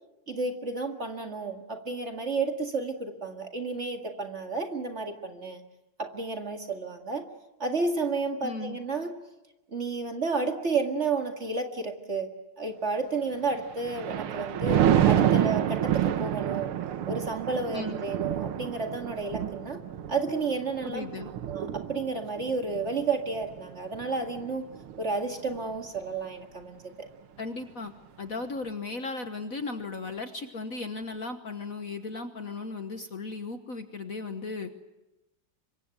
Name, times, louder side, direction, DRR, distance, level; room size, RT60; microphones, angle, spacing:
voice 1, 0.3-5.6 6.0-7.3 7.6-9.1 9.7-12.3 12.6-16.7 17.1-19.8 20.1-21.1 21.5-24.7 25.0-27.1, right 4 dB, 35° right, 4 dB, 2.1 m, -31 dB
voice 2, 8.4-8.8 17.7-18.0 20.8-21.3 27.4-27.9 28.2-34.7, left 3 dB, 45° left, 7 dB, 1.5 m, -36 dB
Thunder, 13.5-25.0 25.5-25.8, right 10 dB, 90° right, 2.0 m, -28 dB
25.5 x 23.0 x 8.1 m, 0.98 s
omnidirectional pair, 2.3 m